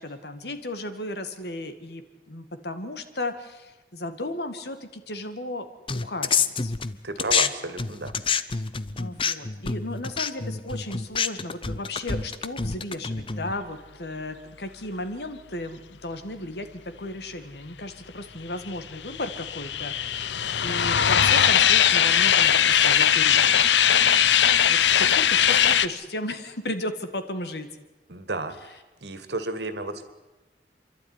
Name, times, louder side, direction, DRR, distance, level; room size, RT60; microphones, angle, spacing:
voice 1, 0.0-5.7 5.9-6.7 9.0-16.7 17.0-23.6 24.7-27.7, left 1 dB, 65° left, 9 dB, 1.9 m, -35 dB
sound 1, 5.9-7.5 7.8-13.5, left 5 dB, 30° left, 0.7 m, -27 dB
voice 2, 7.0-8.2 28.1-28.6 29.0-30.0, right 2 dB, 75° right, 10 dB, 2.0 m, -32 dB
sound 2, 18.7-25.9, left 9 dB, 85° left, 0.8 m, -20 dB
29.0 x 12.0 x 9.8 m, 1.1 s
head